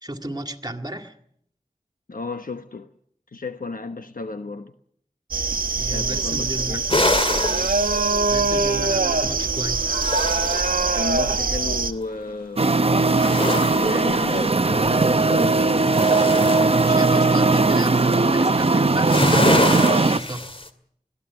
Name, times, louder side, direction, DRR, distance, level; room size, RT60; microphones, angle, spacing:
voice 1, 0.0-1.2 5.7-6.8 8.3-10.1 16.8-20.5, right 1 dB, 30° right, 2.1 m, -32 dB
voice 2, 2.1-2.9 3.3-4.7 5.7-6.9 7.3-7.7 10.9-12.8 13.8-16.1, left 3 dB, 80° left, 1.0 m, -33 dB
sound 1, 5.3-11.9, right 3 dB, 85° right, 1.1 m, -23 dB
sound 2, 6.9-8.9 9.6-11.3 13.0-14.9 15.4-17.7 18.9-20.7, left 1 dB, 40° left, 2.2 m, -26 dB
sound 3, 12.6-20.2, right 3 dB, 45° right, 0.8 m, -19 dB
21.5 x 14.5 x 9.5 m
wide cardioid pair, 55°, 14 cm